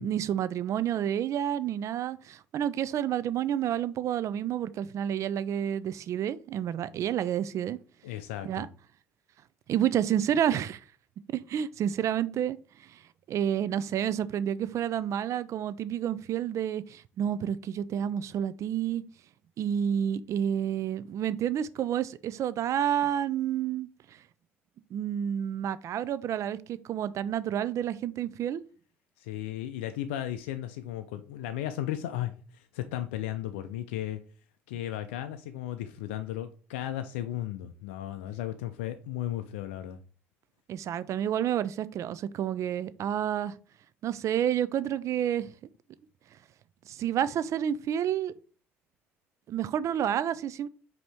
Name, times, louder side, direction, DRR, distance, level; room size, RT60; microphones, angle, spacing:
voice 1, 0.0-7.8 8.4-8.7 9.7-10.8 11.3-12.6 12.9-13.0 13.3-19.0 19.6-23.9 24.9-28.6 40.7-43.5 44.0-45.5 46.9-48.3 49.5-50.7, right 10 dB, 50° right, 0.4 m, -29 dB
voice 2, 8.0-8.7 29.2-34.2 34.7-40.0, left 12 dB, 80° left, 0.3 m, -35 dB
5.1 x 2.8 x 3.4 m
hypercardioid pair, 60°, 6 cm